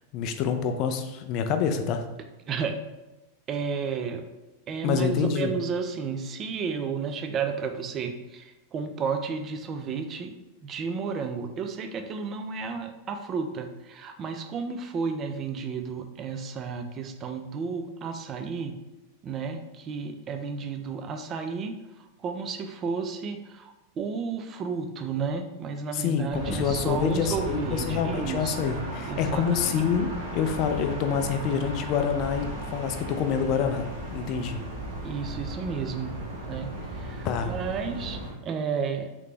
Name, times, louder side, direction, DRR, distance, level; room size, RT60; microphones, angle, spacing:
voice 1, 0.1-2.0 4.8-5.6 25.9-34.6 37.2-37.5, left 7 dB, 40° left, 7 dB, 0.4 m, -27 dB
voice 2, 2.5-2.8 3.5-4.3 4.7-10.3 10.6-18.7 19.2-21.7 22.2-28.7 29.1-29.7 35.0-36.1 36.5-39.1, right 5 dB, 30° right, 6 dB, 0.4 m, -32 dB
sound 1, 26.3-38.3, right 1 dB, 60° right, 1.3 m, -35 dB
3.7 x 3.3 x 3.3 m, 1.0 s
figure-of-eight pair, 90°, 0 cm